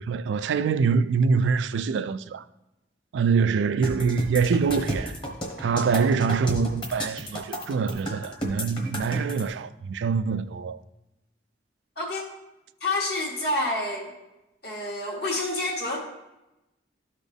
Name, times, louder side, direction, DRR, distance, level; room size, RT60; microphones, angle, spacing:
voice 1, 0.0-2.4 3.1-5.2 5.6-10.8, right 5 dB, 75° right, 0.3 m, -24 dB
sound 1, 3.8-9.4, equal, 25° left, 1.1 m, -32 dB
voice 2, 12.0-12.3 12.8-14.1 14.6-16.0, left 2 dB, 55° left, 1.5 m, -28 dB
12.5 x 4.2 x 3.4 m
head